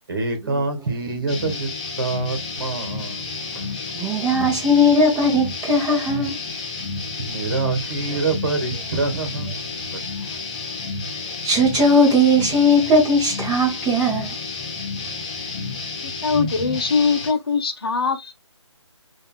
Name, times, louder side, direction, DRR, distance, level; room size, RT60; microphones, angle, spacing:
voice 1, 0.1-1.7 2.0-3.7 7.2-10.0, right 3 dB, 45° right, 1.6 m, -26 dB
sound 1, 1.3-17.3, left 4 dB, 15° left, 0.6 m, -31 dB
voice 2, 3.9-6.4 11.4-14.3, left 1 dB, 10° right, 1.4 m, -18 dB
voice 3, 16.2-18.3, left 5 dB, 50° left, 0.9 m, -21 dB
5.4 x 2.8 x 2.2 m
figure-of-eight pair, 150°, 16 cm